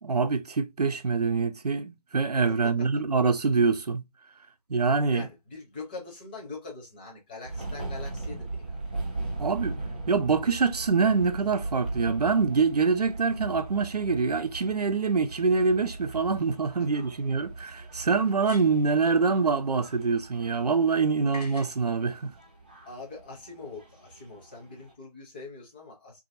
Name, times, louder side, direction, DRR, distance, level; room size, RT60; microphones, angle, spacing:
voice 1, 0.0-4.0 4.7-5.3 9.4-9.8 10.1-22.3, right 4 dB, 80° right, 0.6 m, -25 dB
voice 2, 5.1-8.8 22.9-26.2, left 3 dB, 15° left, 0.7 m, -43 dB
sound 1, 7.4-24.9, right 2 dB, 15° right, 0.4 m, -39 dB
sound 2, 16.4-16.5 18.3-19.0 21.3-21.8, left 2 dB, 80° left, 0.8 m, -45 dB
2.8 x 2.7 x 2.6 m
figure-of-eight pair, 155°, 20 cm